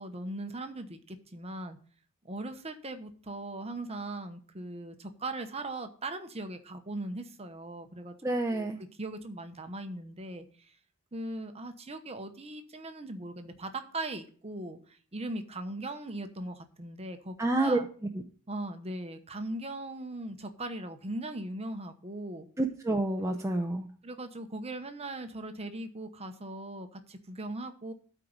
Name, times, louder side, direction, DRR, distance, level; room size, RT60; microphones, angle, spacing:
voice 1, 0.0-1.8 2.2-8.2 8.5-8.7 9.0-10.8 11.1-17.9 18.5-22.5 23.2-23.4 24.0-27.9, right 2 dB, 30° right, 8 dB, 1.0 m, -39 dB
voice 2, 8.2-8.8 17.4-17.8 22.6-23.9, right 2 dB, 15° right, 2 dB, 0.6 m, -28 dB
12.5 x 4.6 x 5.2 m, 0.43 s
head